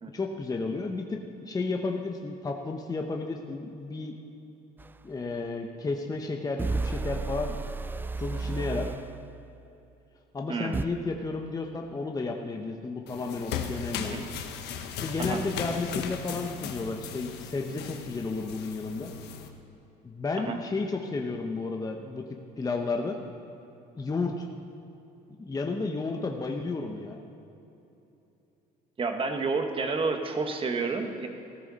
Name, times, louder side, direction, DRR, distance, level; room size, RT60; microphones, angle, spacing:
voice 1, 0.1-1.2 1.5-4.2 5.0-7.6 8.2-8.9 10.3-14.2 15.0-19.1 20.0-22.2 22.6-23.2 24.0-24.5 25.4-27.2, left 3 dB, 20° left, 3 dB, 0.9 m, -32 dB
sound 1, 4.8-4.9 6.6-9.1 10.7-10.8, right 3 dB, 10° right, 0.3 m, -31 dB
voice 2, 10.5-10.8 14.0-14.2 15.2-15.4 20.4-20.6 29.0-31.3, right 4 dB, 30° right, 5 dB, 1.4 m, -30 dB
sound 2, 13.1-19.5, left 7 dB, 80° left, 1.2 m, -37 dB
15.0 x 13.0 x 4.1 m, 2.9 s
cardioid pair, 110°, 17 cm